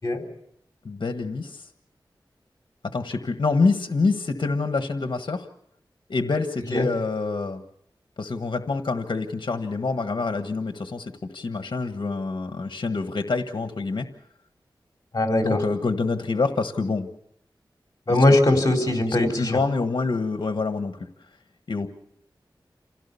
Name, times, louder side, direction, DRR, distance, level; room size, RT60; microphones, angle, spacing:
voice 1, 0.8-1.7 2.9-5.5 6.1-7.6 8.2-14.1 15.4-17.1 18.1-18.2 19.2-21.0 21.7-21.9, left 3 dB, 70° left, 7 dB, 1.4 m, -26 dB
voice 2, 15.1-15.6 18.1-19.6, left 2 dB, 45° left, 3 dB, 4.2 m, -20 dB
27.5 x 17.0 x 7.0 m, 0.74 s
wide cardioid pair, 75°, 8 cm